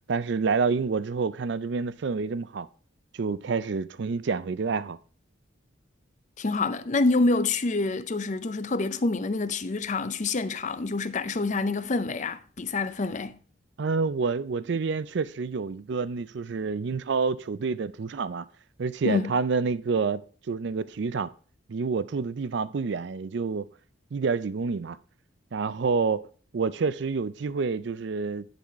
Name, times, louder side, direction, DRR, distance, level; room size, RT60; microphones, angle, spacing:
voice 1, 0.1-2.7 3.1-5.0 13.8-18.5 18.8-20.2 20.5-21.3 21.7-23.7 24.1-25.0 25.5-26.2 26.5-28.5, right 4 dB, 55° right, 0.4 m, -28 dB
voice 2, 6.4-13.4 19.0-19.3, left 3 dB, 35° left, 0.5 m, -27 dB
10.0 x 4.1 x 4.6 m
head